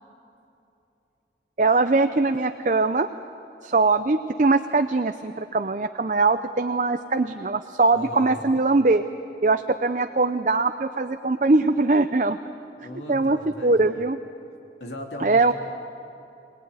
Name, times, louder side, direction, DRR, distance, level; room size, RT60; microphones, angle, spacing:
voice 1, 1.6-3.1 3.6-9.0 9.4-12.4 13.1-14.2 15.2-15.5, right 3 dB, 45° right, 9 dB, 0.6 m, -21 dB
voice 2, 7.9-8.5 12.8-13.9 14.8-15.5, left 1 dB, 80° left, 2 dB, 3.0 m, -38 dB
25.0 x 18.5 x 9.5 m, 2.8 s
head